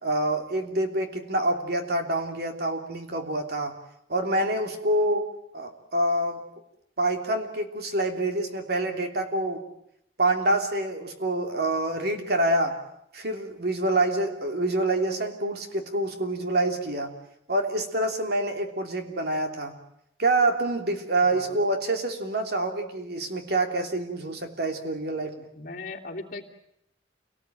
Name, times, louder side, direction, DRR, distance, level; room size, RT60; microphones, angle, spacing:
voice 1, 0.0-3.8 4.1-5.3 5.5-6.4 7.0-9.6 10.2-12.8 13.1-17.1 17.5-19.7 20.2-25.5, right 2 dB, 60° right, 5 dB, 3.0 m, -26 dB
voice 2, 21.2-21.6 25.5-26.4, left 3 dB, 50° left, 0 dB, 3.0 m, -38 dB
28.0 x 18.5 x 9.1 m, 0.79 s
head